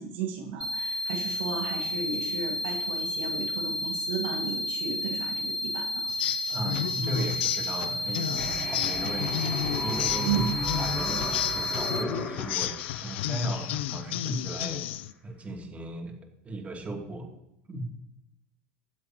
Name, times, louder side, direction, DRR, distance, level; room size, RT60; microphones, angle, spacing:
voice 1, 0.0-6.1 10.3-10.5, right 6 dB, 85° right, 2 dB, 1.9 m, -34 dB
sound 1, 0.6-12.0, left 1 dB, 5° left, 0.9 m, -32 dB
sound 2, 6.1-15.1, left 13 dB, 85° left, 0.5 m, -32 dB
voice 2, 6.5-9.6 9.8-10.5 10.8-16.1 16.4-17.3 17.7-17.9, right 1 dB, 25° right, 1 dB, 2.8 m, -36 dB
sound 3, 8.4-14.3, left 3 dB, 25° left, 4.8 m, -36 dB
21.0 x 7.9 x 3.0 m, 0.83 s
supercardioid pair, 115°, 6 cm